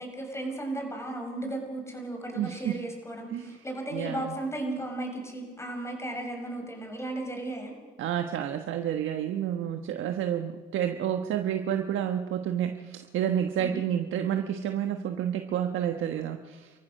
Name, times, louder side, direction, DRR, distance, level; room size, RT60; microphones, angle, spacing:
voice 1, 0.0-7.7 13.6-13.8, right 1 dB, 15° left, 3 dB, 6.3 m, -35 dB
voice 2, 2.3-2.8 3.3-3.6 3.9-4.3 8.0-16.7, right 10 dB, 80° right, 6 dB, 1.3 m, -30 dB
28.0 x 14.5 x 6.6 m, 1.4 s
cardioid pair, 90°, 20 cm